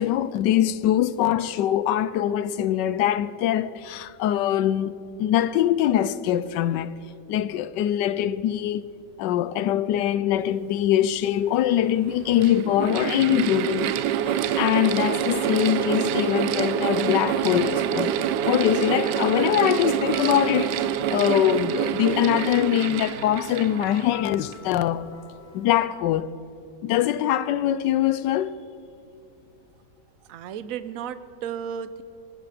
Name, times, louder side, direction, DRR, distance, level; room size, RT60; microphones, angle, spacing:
voice 1, 0.0-4.9 5.2-6.9 7.3-8.9 9.2-18.1 18.4-20.8 21.1-25.1 25.5-26.3 26.8-28.5, left 11 dB, 85° left, 1.2 m, -23 dB
Mechanical fan, 11.1-11.2 12.0-24.7, right 9 dB, 80° right, 1.2 m, -26 dB
sound 1, 16.7-26.0, left 5 dB, 35° left, 2.0 m, -46 dB
voice 2, 30.3-32.0, right 8 dB, 65° right, 1.0 m, -34 dB
21.5 x 12.5 x 5.0 m
omnidirectional pair, 1.8 m